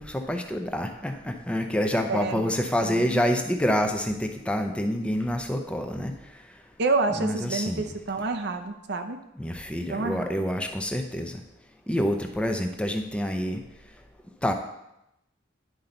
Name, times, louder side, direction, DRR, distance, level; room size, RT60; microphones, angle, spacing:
voice 1, 0.0-6.1 7.1-7.9 9.4-11.4 11.9-13.6 14.4-14.5, equal, 5° left, 5 dB, 0.6 m, -27 dB
voice 2, 2.1-2.4 2.8-3.2 6.8-9.2 9.9-10.3, right 3 dB, 60° right, 6 dB, 0.7 m, -28 dB
10.5 x 5.5 x 3.9 m, 0.87 s
head